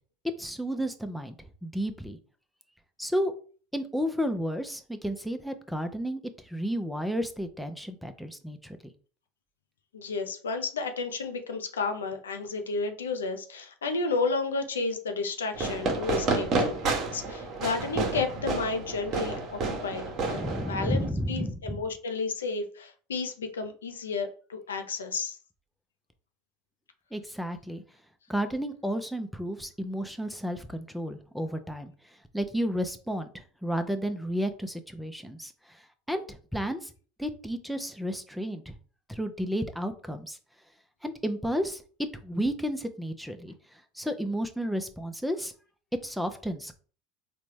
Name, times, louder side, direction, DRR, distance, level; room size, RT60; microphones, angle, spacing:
voice 1, 0.4-2.2 3.0-3.3 3.7-8.8 20.3-21.8 27.1-27.8 28.3-31.9 32.3-35.8 36.1-36.9 37.2-38.7 39.1-40.4 41.0-45.5 46.0-46.8, equal, ahead, 8 dB, 0.5 m, -32 dB
voice 2, 9.9-25.4, left 4 dB, 90° left, 7 dB, 0.4 m, -32 dB
Fireworks, 15.5-21.1, right 3 dB, 45° right, 0.9 m, -30 dB
3.9 x 2.2 x 3.2 m, 0.40 s
hypercardioid pair, 85°, 0 cm